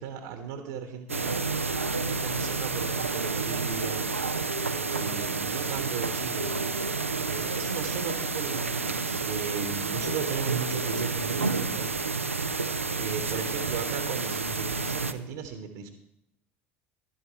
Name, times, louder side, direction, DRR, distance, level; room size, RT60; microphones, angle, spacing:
voice 1, 0.0-1.4 2.2-4.2 4.7-6.5 7.2-12.0 12.6-15.9, right 6 dB, 65° right, 6 dB, 1.2 m, -36 dB
sound 1, 1.1-15.1, right 4 dB, 85° right, 0.5 m, -30 dB
14.5 x 12.0 x 3.2 m, 0.82 s
figure-of-eight pair, 60°, 7 cm